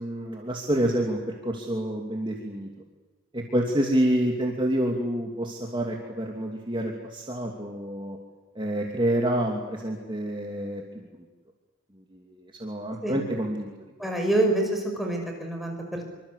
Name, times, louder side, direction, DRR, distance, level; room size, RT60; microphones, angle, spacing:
voice 1, 0.0-2.7 3.3-8.2 8.5-11.0 12.1-12.2 12.6-13.7 14.0-14.1, right 1 dB, 20° right, 0 dB, 2.8 m, -28 dB
voice 2, 14.0-16.0, right 1 dB, ahead, 1 dB, 5.6 m, -26 dB
26.5 x 25.0 x 8.4 m, 1.3 s
head